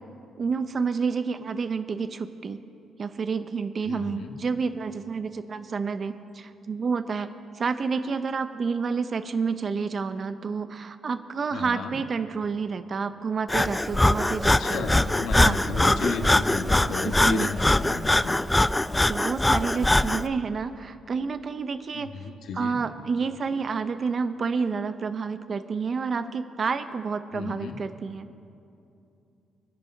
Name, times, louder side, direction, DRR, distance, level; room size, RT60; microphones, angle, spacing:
voice 1, 0.4-2.6 3.0-7.3 7.5-14.9 15.4-15.6 17.0-17.5 17.9-18.1 19.1-22.1 22.5-28.3, right 5 dB, 45° right, 11 dB, 0.5 m, -29 dB
voice 2, 3.8-4.4 11.5-11.9 14.6-18.4 21.9-22.8 27.3-27.7, left 5 dB, 75° left, 4 dB, 1.2 m, -33 dB
Breathing, 13.5-20.3, left 1 dB, 10° left, 0.3 m, -22 dB
24.5 x 10.5 x 2.6 m, 2.7 s
cardioid pair, 90°, 0 cm